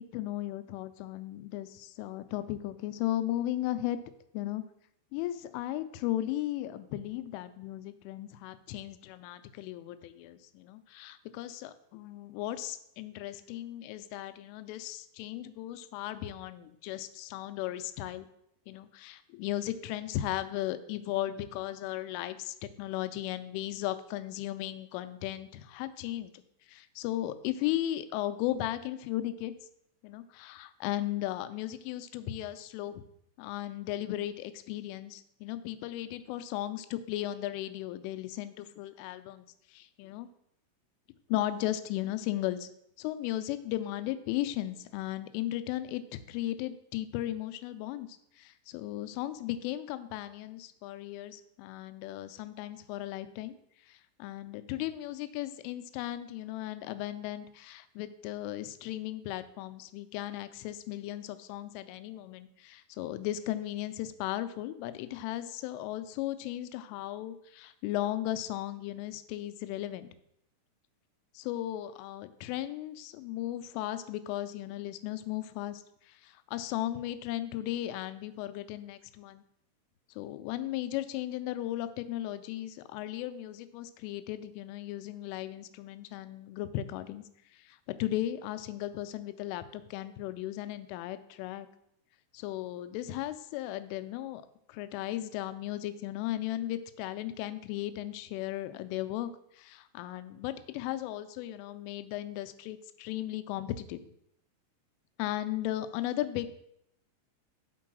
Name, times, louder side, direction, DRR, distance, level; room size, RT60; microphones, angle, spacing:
voice 1, 0.0-4.0 4.3-4.6 5.1-18.3 18.7-26.3 26.7-29.5 30.0-33.0 33.4-40.3 41.3-42.7 43.0-48.1 48.4-53.6 53.9-70.1 71.4-79.4 80.2-87.2 87.5-91.7 92.3-94.4 94.7-104.1 105.2-106.5, left 14 dB, 85° left, 11 dB, 3.1 m, -36 dB
8.5 x 4.6 x 6.0 m, 0.75 s
omnidirectional pair, 5.7 m